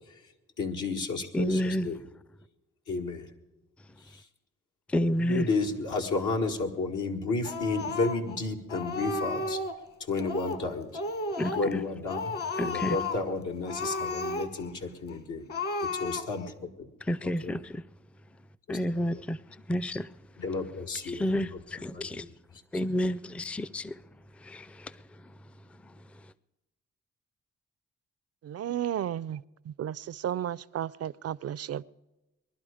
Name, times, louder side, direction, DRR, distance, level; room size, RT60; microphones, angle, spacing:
voice 1, 0.6-2.0 2.9-3.3 4.0-4.3 5.2-9.6 10.0-11.0 11.5-15.5 15.8-16.9 17.2-17.5 18.7-18.8 19.1-19.2 20.4-21.6 21.9-22.3, left 3 dB, 80° left, 1.6 m, -32 dB
voice 2, 1.3-1.9 4.9-5.5 11.4-11.8 12.6-13.0 17.0-17.8 18.7-20.1 21.0-22.3 22.7-24.0 24.4-25.4 25.8-25.9, equal, 5° left, 0.4 m, -30 dB
Speech, 7.4-8.4 8.7-9.8 10.2-10.7 10.9-11.8 12.1-13.3 13.6-14.7 15.1-15.2 15.5-16.5, left 2 dB, 50° left, 1.7 m, -33 dB
voice 3, 28.4-31.8, right 10 dB, 55° right, 0.4 m, -33 dB
21.0 x 11.5 x 5.0 m
cardioid pair, 55°, 30 cm